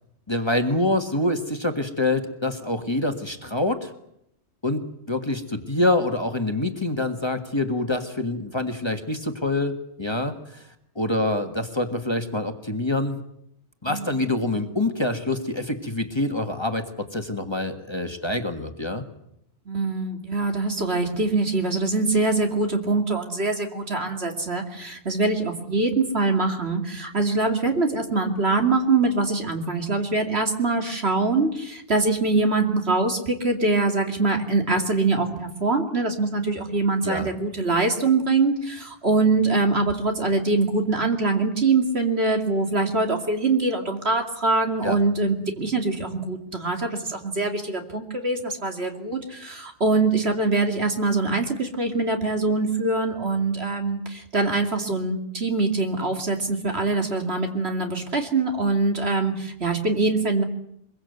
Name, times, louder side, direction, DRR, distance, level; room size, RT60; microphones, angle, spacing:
voice 1, 0.3-3.9 4.6-4.8 5.1-9.7 10.0-10.6 10.9-13.2 13.8-19.0 37.0-37.3 44.8-45.0, left 2 dB, 25° left, 5 dB, 1.7 m, -26 dB
voice 2, 13.9-14.6 19.7-60.4, right 3 dB, 60° right, 4 dB, 2.9 m, -23 dB
24.0 x 22.0 x 8.1 m, 0.77 s
omnidirectional pair, 1.2 m